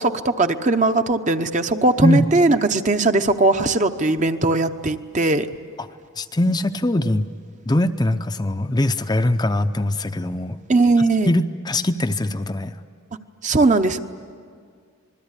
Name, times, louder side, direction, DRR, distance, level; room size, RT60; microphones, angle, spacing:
voice 1, 0.0-5.5 10.7-11.3 13.4-14.0, right 2 dB, 35° right, 8 dB, 0.9 m, -19 dB
voice 2, 6.2-7.3 7.7-10.6 11.3-12.7, left 1 dB, 20° left, 7 dB, 0.6 m, -21 dB
27.0 x 21.0 x 9.8 m, 2.1 s
head